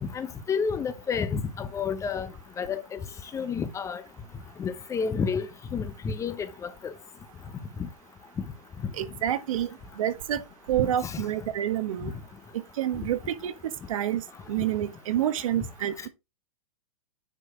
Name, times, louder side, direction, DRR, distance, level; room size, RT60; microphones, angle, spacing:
voice 1, 0.0-2.3 2.6-3.0 3.3-4.0 4.6-6.9 7.8-7.9 11.0-11.2, left 6 dB, 15° left, 0.9 m, -30 dB
voice 2, 9.0-9.7 10.0-12.1 12.8-13.5 13.9-14.2 14.5-16.1, right 11 dB, 70° right, 1.4 m, -28 dB
9.8 x 4.6 x 4.7 m
hypercardioid pair, 135°, 18 cm